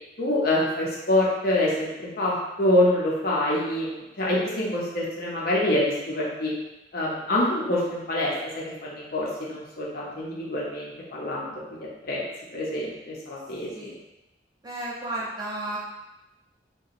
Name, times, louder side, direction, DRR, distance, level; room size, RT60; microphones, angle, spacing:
voice 1, 0.2-6.5 6.9-11.8 12.1-12.2 12.5-13.9, left 1 dB, 55° left, -5 dB, 0.7 m, -26 dB
voice 2, 14.6-15.8, right 1 dB, 25° right, -6 dB, 0.6 m, -32 dB
2.8 x 2.2 x 2.5 m, 0.98 s
head